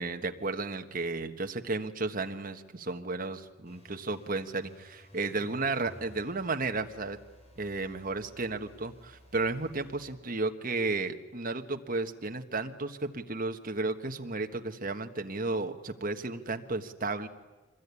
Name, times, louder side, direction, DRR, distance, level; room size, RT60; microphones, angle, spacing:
voice 1, 0.0-7.2 7.6-17.3, right 3 dB, 45° right, 6 dB, 1.5 m, -33 dB
sound 1, 3.7-10.2, equal, 30° left, 4.6 m, -56 dB
25.5 x 21.0 x 9.8 m, 1.2 s
head